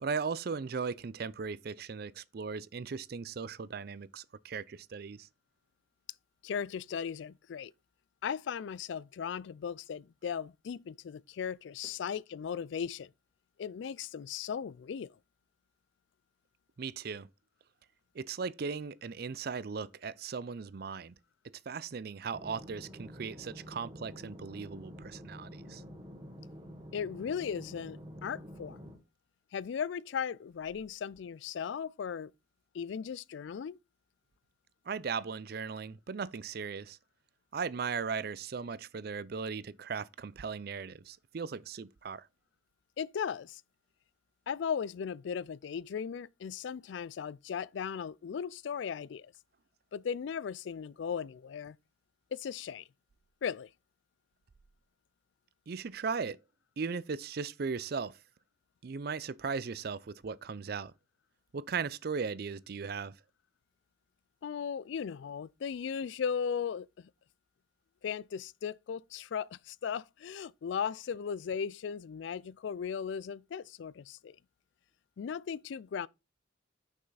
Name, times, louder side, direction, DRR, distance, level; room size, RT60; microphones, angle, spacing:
voice 1, 0.0-5.3 16.8-17.3 18.2-21.1 21.4-25.8 34.9-37.0 37.5-42.3 55.7-56.4 56.8-58.1 58.8-60.9 61.5-63.1, right 5 dB, 55° right, 0.4 m, -37 dB
voice 2, 6.4-7.7 8.2-13.1 13.6-15.2 26.9-28.8 29.5-32.3 32.7-33.8 43.0-43.6 44.5-49.3 49.9-51.8 52.3-52.9 53.4-53.7 64.4-67.1 68.0-74.4 75.2-76.1, left 7 dB, 70° left, 0.3 m, -37 dB
sound 1, 22.3-29.0, equal, 25° right, 1.4 m, -48 dB
6.2 x 5.7 x 4.0 m
head